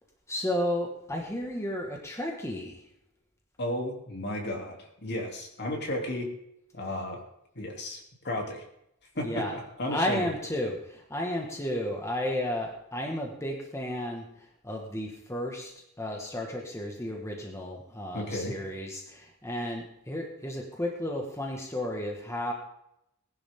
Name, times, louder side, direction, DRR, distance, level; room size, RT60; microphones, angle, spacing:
voice 1, 0.3-2.8 9.2-9.5 9.9-15.7 16.0-22.5, left 1 dB, 15° left, 0 dB, 1.7 m, -33 dB
voice 2, 3.6-6.3 6.7-7.2 7.5-8.6 9.1-10.3 18.1-18.5, left 1 dB, 50° left, 1 dB, 3.1 m, -33 dB
19.5 x 11.5 x 3.7 m, 0.79 s
head